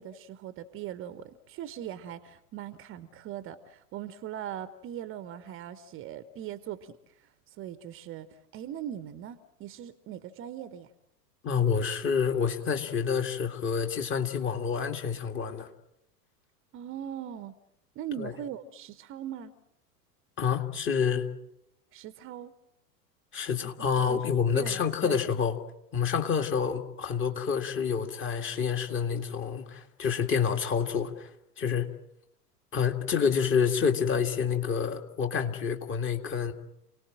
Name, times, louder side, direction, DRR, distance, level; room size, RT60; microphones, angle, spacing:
voice 1, 0.0-7.0 7.6-8.3 8.5-10.9 16.7-17.5 18.0-19.5 21.9-22.5 24.1-24.2 24.5-25.2, right 10 dB, 25° right, 14 dB, 1.0 m, -40 dB
voice 2, 11.4-15.7 18.2-18.3 20.4-21.3 23.3-25.6 25.9-31.3 31.6-31.9 32.7-36.5, left 6 dB, 25° left, 5 dB, 2.1 m, -28 dB
28.5 x 19.0 x 7.6 m, 0.83 s
figure-of-eight pair, 90°, 47 cm